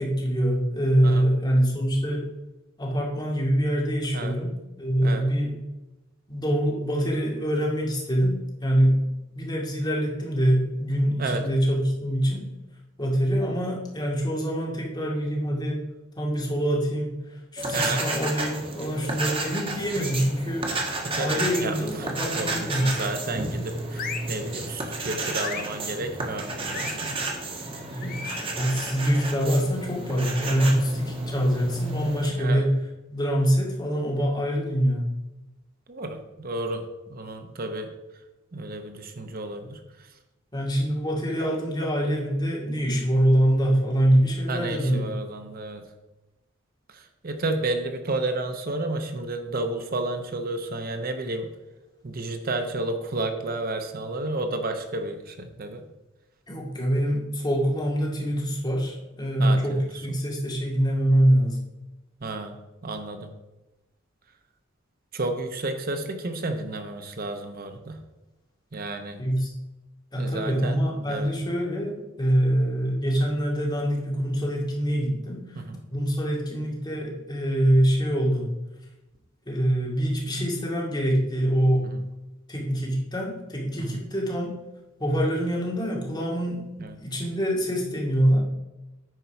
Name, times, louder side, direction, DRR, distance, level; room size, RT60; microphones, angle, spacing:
voice 1, 0.0-2.2 2.8-5.5 6.3-9.1 9.3-12.4 13.0-15.8 16.2-20.7 21.2-22.9 27.9-32.7 33.1-35.1 40.5-45.0 56.5-61.6 69.2-69.5 70.1-75.6 75.9-78.5 79.5-81.9 82.5-84.6 85.0-86.7 87.0-88.4, equal, 20° left, -3 dB, 2.2 m, -24 dB
sound 1, 17.6-32.3, right 2 dB, 25° right, 1.3 m, -32 dB
voice 2, 17.7-18.0 21.0-27.2 32.3-32.7 35.9-37.9 38.5-40.1 44.5-45.8 46.9-51.5 52.0-55.9 59.4-60.2 62.2-63.3 65.1-68.0 68.7-69.2 70.2-70.8 71.1-71.3 75.5-75.8 81.9-82.0 83.8-84.0 86.8-86.9, right 2 dB, 45° right, 6 dB, 0.8 m, -32 dB
sound 2, 19.9-20.4 21.4-21.9 22.7-23.2 23.9-24.4 25.4-25.8 26.7-27.0 28.0-28.5, left 6 dB, 45° left, 0.9 m, -37 dB
9.4 x 4.6 x 5.7 m, 1.0 s
head